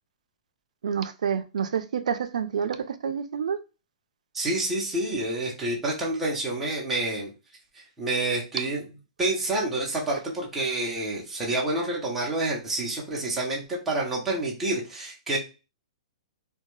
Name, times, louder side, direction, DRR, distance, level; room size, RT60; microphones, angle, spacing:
voice 1, 0.8-3.6, right 7 dB, 90° right, 10 dB, 0.3 m, -28 dB
voice 2, 4.3-7.3 8.0-8.8 9.2-15.4, right 2 dB, 5° right, -4 dB, 0.6 m, -28 dB
2.6 x 2.1 x 3.0 m, 0.31 s
hypercardioid pair, 175°, 4 cm